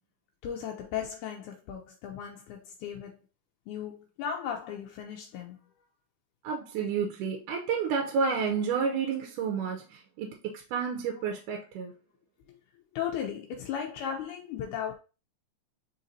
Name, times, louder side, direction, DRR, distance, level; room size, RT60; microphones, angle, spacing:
voice 1, 0.4-3.2 3.7-5.6 12.9-15.0, left 8 dB, 80° left, 2.0 m, -36 dB
voice 2, 6.4-11.9, right 6 dB, 85° right, 2.2 m, -30 dB
4.8 x 4.0 x 2.6 m
omnidirectional pair, 3.5 m